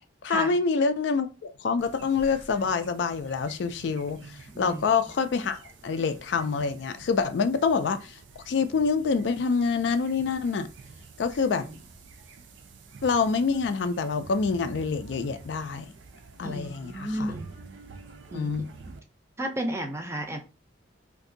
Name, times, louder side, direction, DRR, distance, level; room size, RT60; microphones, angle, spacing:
voice 1, 0.2-8.2 8.5-10.7 11.2-11.7 13.0-15.9 16.4-17.3 18.3-18.7, left 5 dB, 65° left, 0.3 m, -26 dB
sound 1, 1.8-19.0, right 4 dB, 80° right, 0.6 m, -48 dB
voice 2, 4.5-4.9 11.5-11.7 16.4-17.5 18.3-18.5 19.4-20.4, right 1 dB, 15° right, 0.5 m, -33 dB
2.6 x 2.6 x 3.8 m
head